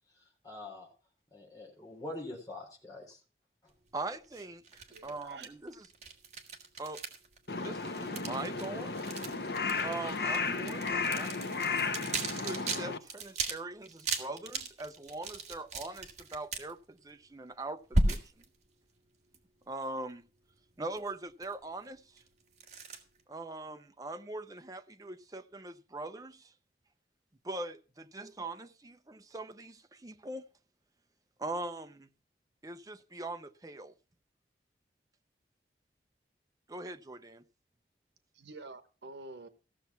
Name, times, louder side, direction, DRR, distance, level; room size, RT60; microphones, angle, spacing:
voice 1, 0.4-0.9 1.3-3.2 3.6-3.7, left 2 dB, 20° left, 3.7 m, -44 dB
voice 2, 3.9-5.9 6.8-7.0 7.6-8.9 9.8-11.6 12.3-18.2 19.7-20.2 20.8-22.1 23.3-26.5 27.4-30.5 31.4-32.1 32.6-33.9 36.7-37.4, right 2 dB, 20° right, 0.6 m, -41 dB
sound 1, 4.2-7.4 7.7-12.8 13.1-13.5 13.8-16.7 17.9-18.4 19.3-19.4 21.0-21.1 21.4-21.5 22.2-22.3 22.6-23.0, right 2 dB, 40° right, 1.9 m, -36 dB
voice 3, 4.9-5.5 38.3-39.5, right 3 dB, 75° right, 1.2 m, -47 dB
Crow, 7.5-13.0, left 4 dB, 60° left, 1.0 m, -34 dB
15.5 x 6.9 x 5.7 m
head